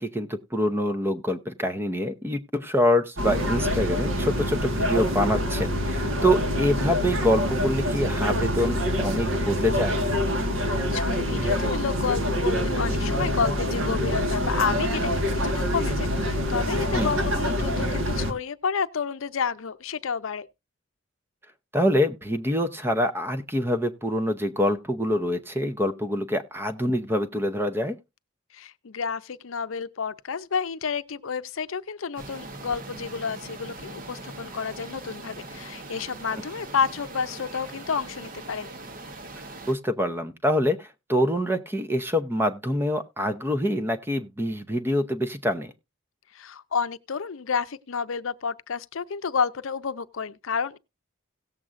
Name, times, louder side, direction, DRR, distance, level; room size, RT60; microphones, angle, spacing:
voice 1, 0.0-10.0 16.9-17.1 21.7-28.0 36.3-36.4 39.3-45.7, equal, 10° right, 0.6 m, -25 dB
sound 1, 3.2-18.3, equal, 75° right, 1.6 m, -26 dB
voice 2, 10.6-20.5 28.5-38.7 46.3-50.8, left 6 dB, 75° left, 0.6 m, -30 dB
sound 2, 32.2-39.7, right 2 dB, 40° right, 0.9 m, -41 dB
17.5 x 7.5 x 2.5 m
head